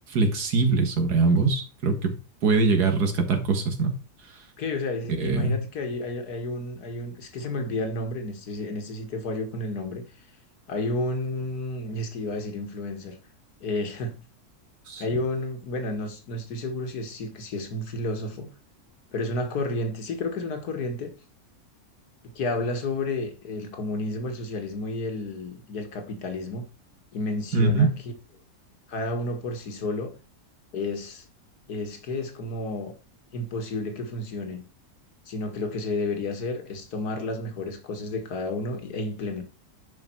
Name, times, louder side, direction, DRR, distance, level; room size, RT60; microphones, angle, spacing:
voice 1, 0.1-2.1 2.4-3.9 5.2-5.6 14.9-15.0 27.5-27.9, right 4 dB, 90° right, 2.3 m, -22 dB
voice 2, 4.6-10.0 10.7-13.2 13.6-14.1 15.0-18.5 19.1-21.1 22.2-26.6 27.1-27.9 28.9-30.1 30.7-31.3 31.7-32.9 33.3-34.6 35.3-39.4, left 2 dB, 75° left, 2.1 m, -31 dB
10.5 x 5.2 x 4.5 m
omnidirectional pair, 1.7 m